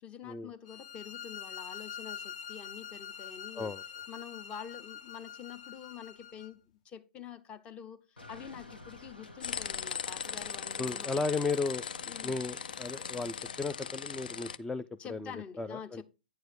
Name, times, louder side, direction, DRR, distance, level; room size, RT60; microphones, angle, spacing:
voice 1, 0.0-3.7 4.1-11.3 12.0-12.4 15.0-16.0, left 8 dB, 20° left, 0.7 m, -47 dB
sound 1, 0.7-6.5, left 8 dB, 50° left, 1.0 m, -45 dB
sound 2, 8.2-13.6, left 2 dB, 85° left, 1.3 m, -54 dB
sound 3, 9.4-14.6, left 7 dB, 65° left, 0.5 m, -39 dB
voice 2, 10.8-11.8 12.2-16.0, left 4 dB, 5° left, 0.3 m, -35 dB
9.3 x 4.7 x 4.6 m
figure-of-eight pair, 120°, 5 cm